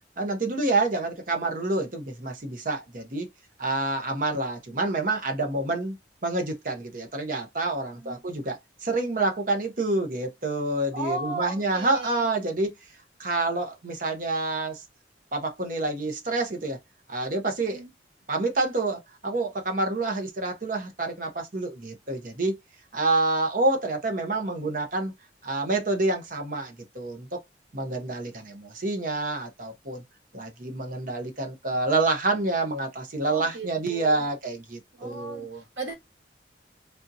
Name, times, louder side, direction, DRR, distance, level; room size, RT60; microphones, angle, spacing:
voice 1, 0.2-3.3 3.6-6.0 6.2-12.7 13.2-14.8 15.3-16.8 17.1-17.8 18.3-22.5 22.9-25.1 25.4-27.4 27.7-30.0 30.3-35.6, right 2 dB, 45° right, 0.8 m, -28 dB
voice 2, 10.9-12.3 17.6-17.9 33.2-34.2 34.9-35.5 35.8-35.9, right 3 dB, 80° right, 1.2 m, -36 dB
3.4 x 2.6 x 2.6 m
head